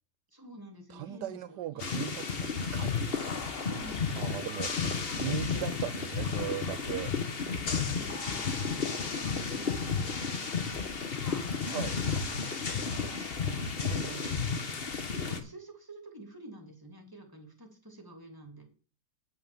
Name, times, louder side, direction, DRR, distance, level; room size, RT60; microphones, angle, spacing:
voice 1, 0.3-1.9 3.6-4.3 4.8-5.8 7.8-13.7 15.1-18.6, right 1 dB, 10° right, 3 dB, 2.7 m, -49 dB
voice 2, 0.9-2.9 4.2-4.7 5.2-7.1 11.7-12.0 13.8-14.4, right 13 dB, 80° right, 13 dB, 1.2 m, -38 dB
sound 1, 1.8-15.4, left 5 dB, 40° left, 1.2 m, -32 dB
8.7 x 5.8 x 7.0 m, 0.39 s
omnidirectional pair, 1.8 m